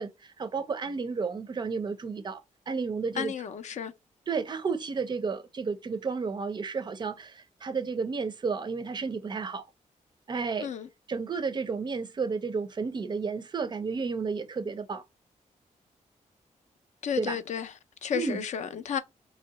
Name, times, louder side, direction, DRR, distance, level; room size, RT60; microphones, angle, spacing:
voice 1, 0.0-2.4 2.7-3.3 4.3-9.7 10.3-10.7 11.1-15.0 17.2-17.4 18.1-18.5, right 5 dB, 35° right, 0.4 m, -32 dB
voice 2, 3.2-3.9 10.6-10.9 17.0-17.6 18.0-19.0, left 8 dB, 65° left, 0.5 m, -32 dB
2.9 x 2.8 x 3.9 m
wide cardioid pair, 165°, 13 cm